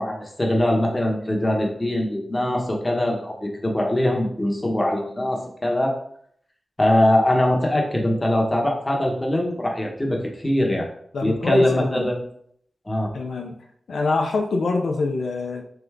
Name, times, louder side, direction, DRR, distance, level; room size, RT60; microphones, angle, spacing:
voice 1, 0.0-6.0 6.8-10.9 11.2-12.2 12.9-13.1, left 1 dB, 20° left, 0 dB, 1.0 m, -22 dB
voice 2, 11.1-12.1 13.1-13.6 13.9-15.6, left 3 dB, 85° left, 3 dB, 0.5 m, -25 dB
3.8 x 3.4 x 3.5 m, 0.66 s
wide cardioid pair, 85°, 0 cm